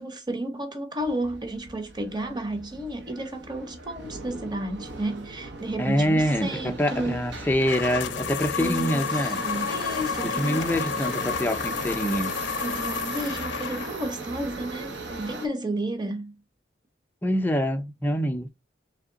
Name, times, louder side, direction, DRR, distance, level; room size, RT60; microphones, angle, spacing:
voice 1, 0.0-7.3 8.6-10.7 12.6-16.3, right 1 dB, 25° right, 0.8 m, -32 dB
Subway metro underground, 1.0-15.5, right 3 dB, 80° right, 0.9 m, -38 dB
voice 2, 5.8-9.4 10.2-12.5 17.2-18.5, equal, 10° left, 0.4 m, -25 dB
sound 1, 7.6-14.2, left 7 dB, 85° left, 0.5 m, -31 dB
3.5 x 3.3 x 3.8 m
head